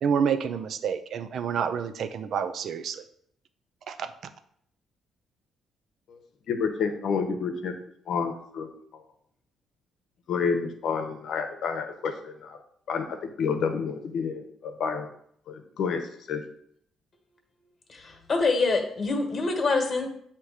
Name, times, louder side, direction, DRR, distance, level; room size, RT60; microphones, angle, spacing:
voice 1, 0.0-3.0 3.9-4.1, right 7 dB, 65° right, 11 dB, 0.5 m, -28 dB
voice 2, 6.5-7.7 8.1-8.7 10.3-12.6 12.9-15.1 15.5-16.4, left 5 dB, 70° left, 6 dB, 0.9 m, -29 dB
voice 3, 17.9-20.1, left 3 dB, 40° left, 4 dB, 1.4 m, -25 dB
7.9 x 2.9 x 4.8 m, 0.68 s
cardioid pair, 90°, 0 cm